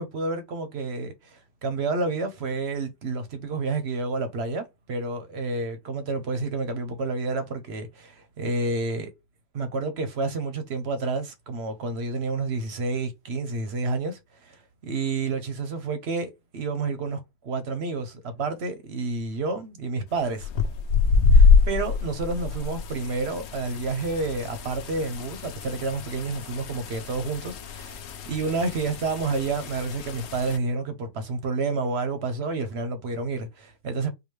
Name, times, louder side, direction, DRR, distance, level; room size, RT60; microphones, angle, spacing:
voice 1, 0.0-9.1 9.5-20.5 21.3-27.9 28.3-34.1, right 3 dB, 55° right, 0.8 m, -29 dB
sound 1, 20.4-30.6, left 4 dB, 70° left, 0.6 m, -25 dB
4.8 x 2.3 x 3.1 m
omnidirectional pair, 1.8 m